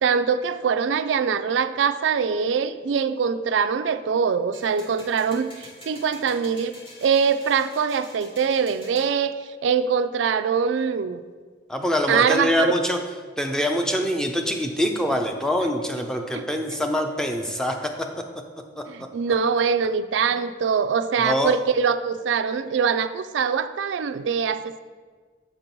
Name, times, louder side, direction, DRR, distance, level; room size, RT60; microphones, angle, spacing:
voice 1, 0.0-9.3 9.6-11.2 12.1-12.7 16.3-16.5 18.9-24.8, right 6 dB, 80° right, 12 dB, 0.4 m, -23 dB
sound 1, 4.5-9.1, left 1 dB, 30° left, 1.9 m, -46 dB
voice 2, 11.7-13.0 13.4-18.1 18.8-18.9 21.2-21.6, equal, 5° left, 4 dB, 0.6 m, -24 dB
7.7 x 4.5 x 5.2 m, 1.5 s
head